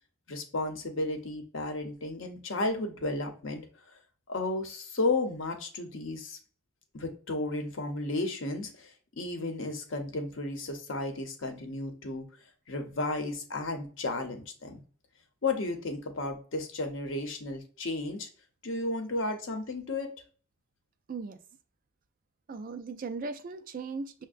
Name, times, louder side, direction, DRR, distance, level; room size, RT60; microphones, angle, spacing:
voice 1, 0.3-3.6 4.3-6.4 6.9-12.3 12.7-14.8 15.4-18.3 18.6-20.1, left 2 dB, 65° left, 0.8 m, -33 dB
voice 2, 21.1-21.4 22.5-24.2, right 4 dB, 40° right, 0.3 m, -38 dB
6.2 x 2.1 x 2.4 m
head